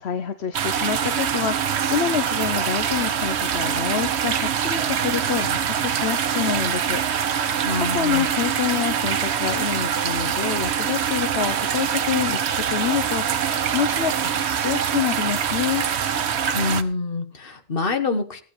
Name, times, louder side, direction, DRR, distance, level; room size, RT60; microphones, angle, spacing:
voice 1, 0.0-7.0 7.8-13.2 13.6-15.8, left 8 dB, 75° left, 9 dB, 1.1 m, -27 dB
sound 1, 0.5-16.8, right 8 dB, 80° right, 1.1 m, -24 dB
voice 2, 7.6-8.3 16.5-18.4, left 4 dB, 60° left, 7 dB, 1.6 m, -26 dB
16.0 x 9.1 x 4.8 m, 0.40 s
omnidirectional pair, 1.1 m